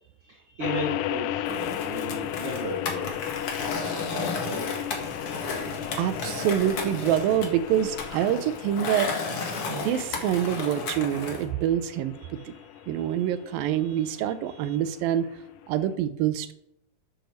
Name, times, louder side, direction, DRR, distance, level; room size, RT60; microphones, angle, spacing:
voice 1, 0.0-3.2 3.7-4.7, right 1 dB, 50° right, -1 dB, 1.7 m, -35 dB
sound 1, 0.6-15.9, left 12 dB, 80° left, 1.9 m, -36 dB
Skateboard, 1.5-11.4, left 4 dB, 50° left, 2.1 m, -33 dB
voice 2, 6.0-9.1 9.7-12.5 12.9-15.3 15.7-16.5, right 10 dB, 85° right, 12 dB, 2.5 m, -26 dB
8.4 x 7.9 x 6.5 m, 0.78 s
omnidirectional pair, 4.1 m